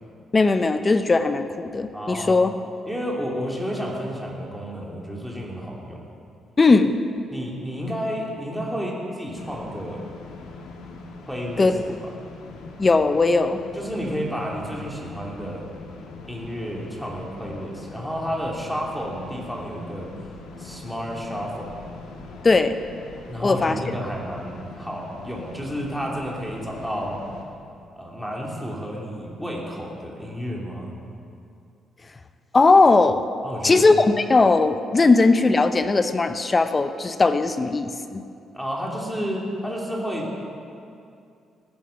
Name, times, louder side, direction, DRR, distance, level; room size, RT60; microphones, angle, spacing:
voice 1, 0.3-2.5 6.6-6.9 11.6-11.7 12.8-13.6 22.4-22.8 23.4-23.8 32.5-33.2 33.6-38.2, left 3 dB, 30° left, 9 dB, 0.7 m, -18 dB
voice 2, 1.9-2.4 2.9-6.0 7.3-10.1 11.3-12.1 13.7-15.7 16.3-20.1 20.6-21.8 23.3-27.3 28.0-31.0 33.4-33.9 38.5-40.4, equal, ahead, -2 dB, 2.9 m, -31 dB
sound 1, 9.4-27.4, left 3 dB, 90° left, 1.7 m, -42 dB
18.5 x 9.4 x 5.9 m, 2.4 s
cardioid pair, 90°, 0 cm